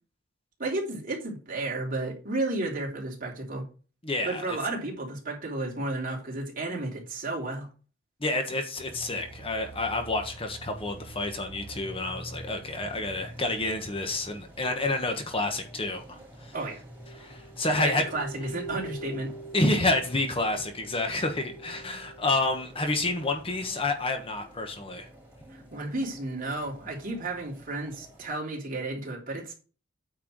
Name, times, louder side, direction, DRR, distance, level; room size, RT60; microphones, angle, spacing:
voice 1, 0.6-3.6 4.2-7.7 16.5-16.8 17.8-19.3 25.5-29.5, right 2 dB, 45° right, 3.2 m, -32 dB
voice 2, 4.0-4.6 8.2-16.0 16.4-16.5 17.1-18.0 19.5-25.1, left 2 dB, 30° left, 1.4 m, -29 dB
sound 1, 8.7-28.4, right 1 dB, 10° right, 4.4 m, -48 dB
sound 2, 17.0-22.6, right 2 dB, 70° left, 0.9 m, -44 dB
8.9 x 4.7 x 6.1 m
head